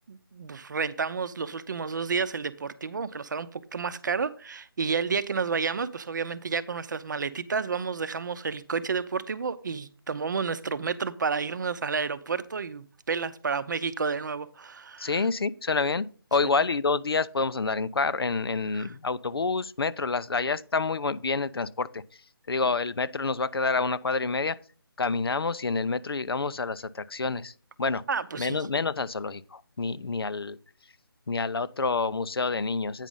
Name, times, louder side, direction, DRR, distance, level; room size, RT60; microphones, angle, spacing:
voice 1, 0.1-15.3 18.7-18.9 28.1-28.6, right 5 dB, 50° right, 0.7 m, -31 dB
voice 2, 15.0-22.0 22.5-24.6 25.0-27.5 27.8-28.0 28.4-30.6 31.3-33.1, left 4 dB, 75° left, 0.6 m, -28 dB
9.1 x 4.9 x 5.4 m
figure-of-eight pair, 160°, 12 cm